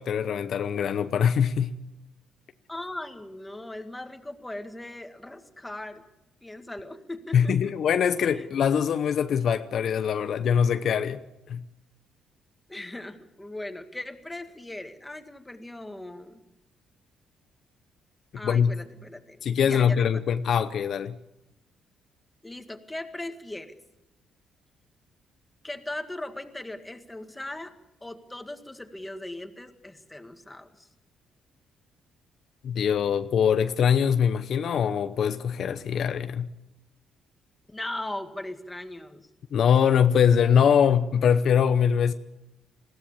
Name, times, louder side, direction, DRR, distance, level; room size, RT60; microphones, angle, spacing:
voice 1, 0.0-1.7 7.3-11.2 11.5-11.6 18.4-18.7 19.4-21.1 32.6-36.5 39.5-42.1, left 7 dB, 65° left, 0.8 m, -23 dB
voice 2, 2.7-6.0 6.4-7.7 8.4-8.5 12.7-16.4 18.4-20.3 22.4-23.8 25.6-27.7 28.0-30.9 37.7-39.3, left 1 dB, 10° left, 1.9 m, -39 dB
20.5 x 16.0 x 8.6 m
cardioid pair, 90°, 0 cm